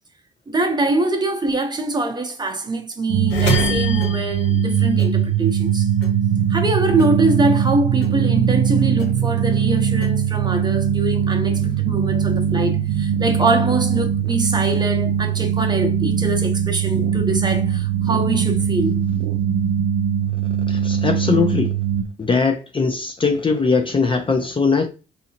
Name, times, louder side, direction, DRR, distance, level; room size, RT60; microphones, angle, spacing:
voice 1, 0.5-5.9 6.5-19.0, right 2 dB, 20° right, 0.8 m, -23 dB
sound 1, 3.1-22.0, right 8 dB, 70° right, 0.4 m, -20 dB
sound 2, 3.3-5.8 6.0-7.7 8.0-9.4 9.8-10.9, left 2 dB, 65° left, 1.4 m, -28 dB
voice 2, 20.7-21.7 22.2-24.9, left 4 dB, 25° left, 0.5 m, -20 dB
3.8 x 2.8 x 2.8 m
cardioid pair, 90°, 20 cm